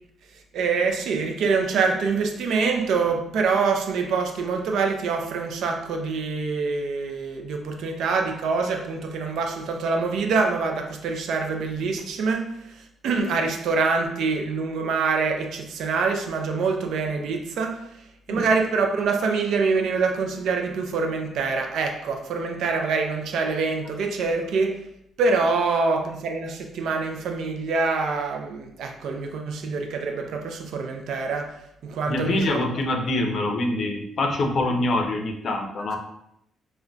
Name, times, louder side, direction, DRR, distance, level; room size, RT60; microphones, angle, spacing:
voice 1, 0.3-24.9 25.2-32.6 35.9-36.0, right 4 dB, 75° right, 0.4 m, -25 dB
voice 2, 32.0-36.0, left 2 dB, 55° left, 0.5 m, -25 dB
3.7 x 2.2 x 2.3 m
cardioid pair, 90°, 0 cm